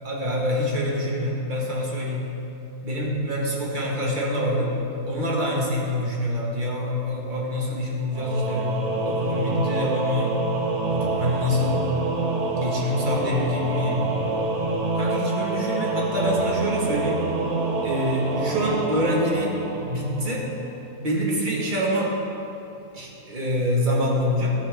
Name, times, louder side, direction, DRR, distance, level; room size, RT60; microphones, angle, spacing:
voice 1, 0.0-2.2 2.8-4.7 5.0-8.7 9.0-10.3 10.9-11.8 12.5-14.0 14.9-17.2 17.8-20.4 21.0-22.1 22.9-24.5, equal, 30° right, -4 dB, 1.5 m, -26 dB
Singing / Musical instrument, 8.1-20.6, right 2 dB, 50° right, 1.1 m, -27 dB
13.0 x 7.6 x 3.5 m, 3.0 s
omnidirectional pair, 1.7 m